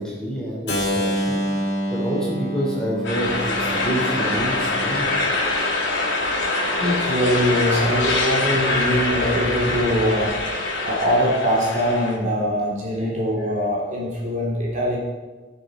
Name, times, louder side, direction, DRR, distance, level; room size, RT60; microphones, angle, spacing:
voice 1, 0.0-1.4 1.9-5.1, right 1 dB, 5° left, -5 dB, 3.4 m, -27 dB
Keyboard (musical), 0.7-6.5, equal, 60° left, 2.8 m, -28 dB
sound 1, 3.0-12.2, left 2 dB, 85° left, 3.0 m, -24 dB
voice 2, 6.8-10.3 10.8-15.0, equal, 40° right, -4 dB, 3.0 m, -22 dB
16.0 x 6.9 x 5.1 m, 1.3 s
head